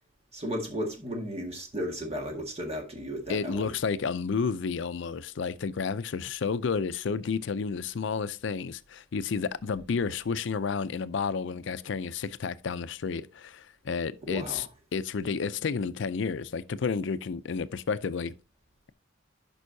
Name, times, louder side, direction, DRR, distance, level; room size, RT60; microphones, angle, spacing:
voice 1, 0.3-3.7 14.2-14.6, equal, 35° right, 1.8 m, -34 dB
voice 2, 3.3-18.3, left 5 dB, 65° left, 0.5 m, -31 dB
11.0 x 5.4 x 2.7 m
head